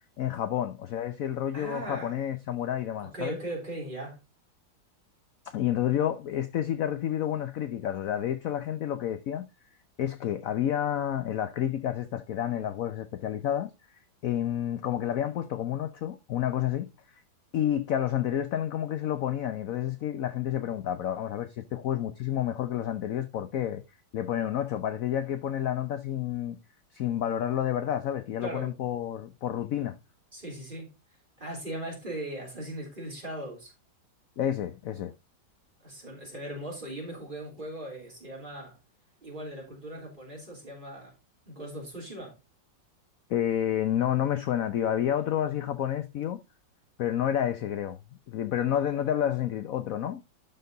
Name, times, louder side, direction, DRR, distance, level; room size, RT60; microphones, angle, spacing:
voice 1, 0.2-3.4 5.4-9.5 10.0-13.7 14.2-16.9 17.5-23.8 24.1-26.6 26.9-30.0 34.4-35.1 43.3-46.4 47.0-48.0 48.3-50.2, left 10 dB, 65° left, 0.9 m, -29 dB
voice 2, 1.5-2.2 3.0-4.2 28.4-28.7 30.3-30.9 31.4-33.7 35.8-38.8 39.2-41.1 41.5-42.4, right 1 dB, 25° right, 3.6 m, -39 dB
12.0 x 4.4 x 3.9 m
omnidirectional pair, 2.0 m